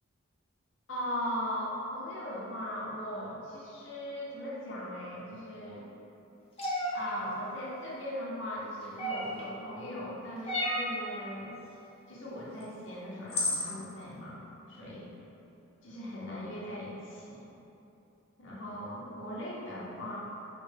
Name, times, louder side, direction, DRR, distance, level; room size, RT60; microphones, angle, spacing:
voice 1, 0.9-5.9 6.9-11.6 12.1-15.2 15.8-17.5 18.4-20.2, equal, 60° left, -6 dB, 0.8 m, -39 dB
sound 1, 6.6-6.9 9.0-9.4 10.5-10.9 12.6-12.7 13.3-13.7, left 1 dB, 30° left, 0.5 m, -31 dB
5.0 x 2.2 x 3.3 m, 2.9 s
head